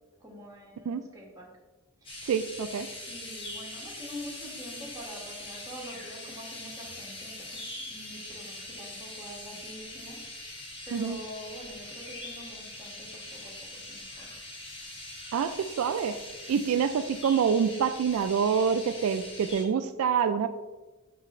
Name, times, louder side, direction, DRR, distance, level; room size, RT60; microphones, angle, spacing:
voice 1, 0.2-1.5 2.0-2.3 3.0-7.6 7.9-10.2 10.5-10.6 10.9-14.3 16.4-16.8, equal, 15° right, -3 dB, 1.4 m, -45 dB
sound 1, 2.0-19.6, left 1 dB, 25° left, 1.3 m, -42 dB
voice 2, 2.3-2.9 10.9-11.2 15.3-16.2 16.5-20.5, right 7 dB, 75° right, 10 dB, 0.3 m, -26 dB
6.1 x 5.7 x 3.0 m, 1.2 s
head